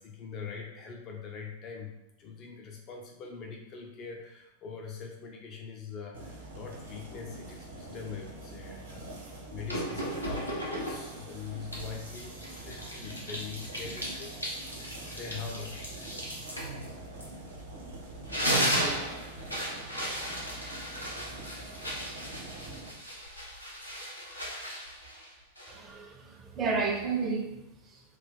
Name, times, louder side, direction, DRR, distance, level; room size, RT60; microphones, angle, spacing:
voice 1, 0.0-9.2 9.5-16.2, left 5 dB, 35° left, 0 dB, 0.5 m, -43 dB
sound 1, 6.1-22.9, right 2 dB, 65° right, 1.0 m, -45 dB
sound 2, 9.7-11.2 11.7-17.8 18.1-26.0, equal, 90° left, 0.8 m, -35 dB
voice 2, 25.7-28.0, right 4 dB, 25° right, 2 dB, 0.7 m, -32 dB
3.3 x 2.5 x 4.1 m, 0.86 s
figure-of-eight pair, 90°, 0 cm